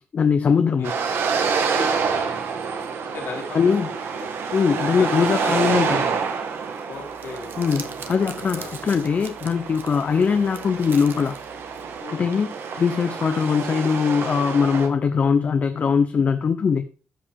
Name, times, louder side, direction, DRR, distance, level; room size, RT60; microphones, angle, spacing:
voice 1, 0.1-0.9 3.5-3.9 4.5-6.1 7.6-11.3 12.1-16.8, left 6 dB, 40° left, 9 dB, 0.5 m, -21 dB
sound 1, 0.8-14.9, right 5 dB, 80° right, 1.3 m, -28 dB
voice 2, 3.1-4.3 4.9-5.6 6.8-8.7 12.0-12.3, left 4 dB, 70° left, 0 dB, 2.9 m, -37 dB
Crumpling crinkling, 6.9-12.0, right 6 dB, 65° right, 0.9 m, -42 dB
13.5 x 5.2 x 3.4 m, 0.37 s
wide cardioid pair, 145°, 4 cm